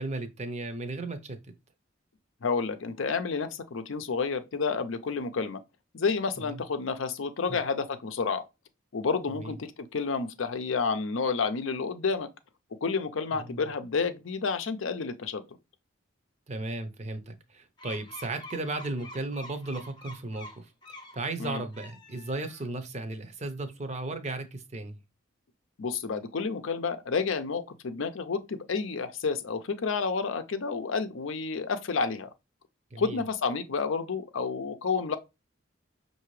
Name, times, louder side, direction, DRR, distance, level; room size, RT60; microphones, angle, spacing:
voice 1, 0.0-1.4 6.4-6.6 7.5-7.6 9.4-9.5 13.3-13.6 16.5-25.0 32.9-33.2, right 2 dB, 35° right, 0.6 m, -35 dB
voice 2, 2.4-5.6 5.9-8.4 8.9-12.3 12.8-15.4 21.4-21.6 25.8-32.3 33.0-35.2, left 5 dB, 70° left, 0.5 m, -30 dB
sound 1, 17.8-21.2 21.6-22.8, left 2 dB, 20° left, 0.7 m, -47 dB
5.7 x 2.6 x 3.1 m
head